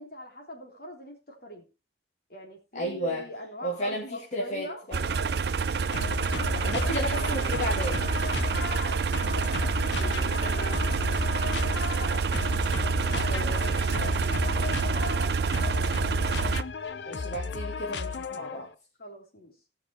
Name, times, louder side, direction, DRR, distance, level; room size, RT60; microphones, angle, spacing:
voice 1, 0.0-1.7 2.3-5.5 6.1-7.1 8.6-12.3 12.8-13.3 13.9-16.0 19.0-19.5, left 1 dB, 60° left, 2 dB, 3.4 m, -43 dB
voice 2, 2.7-3.3 3.6-5.1 6.6-8.0 13.3-14.1 17.0-18.7, equal, 40° left, -3 dB, 2.5 m, -33 dB
sound 1, 4.9-16.6, right 5 dB, 65° right, 0.5 m, -27 dB
sound 2, 5.9-18.7, left 4 dB, 85° left, 0.7 m, -34 dB
18.5 x 6.1 x 4.5 m, 0.30 s
head